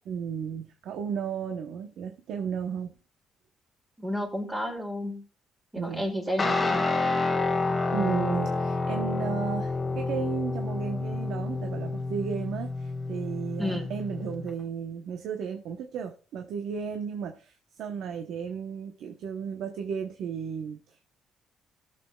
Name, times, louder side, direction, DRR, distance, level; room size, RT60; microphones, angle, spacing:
voice 1, 0.1-2.9 5.8-6.1 7.9-21.0, right 7 dB, 70° right, 1.0 m, -34 dB
voice 2, 4.0-5.2 5.7-6.9 13.6-13.9, equal, 10° right, 2.5 m, -31 dB
Guitar, 6.4-14.5, left 3 dB, 20° left, 1.3 m, -29 dB
19.0 x 6.9 x 2.3 m
cardioid pair, 130°, 0 cm